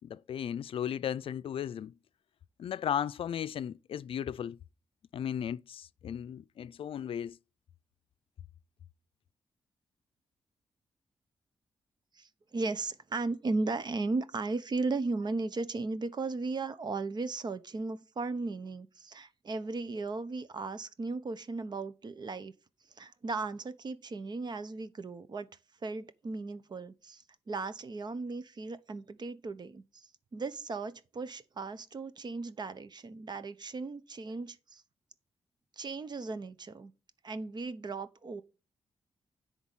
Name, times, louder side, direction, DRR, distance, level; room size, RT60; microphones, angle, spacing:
voice 1, 0.0-1.9 2.6-4.6 5.1-7.4, left 9 dB, 70° left, 0.4 m, -35 dB
voice 2, 12.1-22.5 23.0-25.5 25.8-34.8 35.8-36.9 37.2-38.4, right 3 dB, 50° right, 1.0 m, -36 dB
10.5 x 3.9 x 7.5 m
cardioid pair, 70°, 10 cm